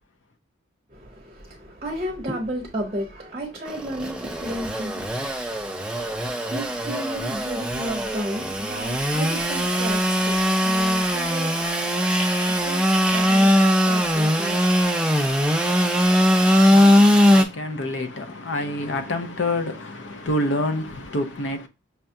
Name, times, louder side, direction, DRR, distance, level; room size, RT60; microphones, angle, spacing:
voice 1, 0.9-14.6, right 1 dB, 30° right, 0.7 m, -34 dB
Engine / Sawing, 3.7-17.4, equal, 5° right, 0.4 m, -20 dB
voice 2, 15.8-21.7, left 1 dB, 70° left, 0.6 m, -28 dB
5.5 x 2.3 x 2.6 m
head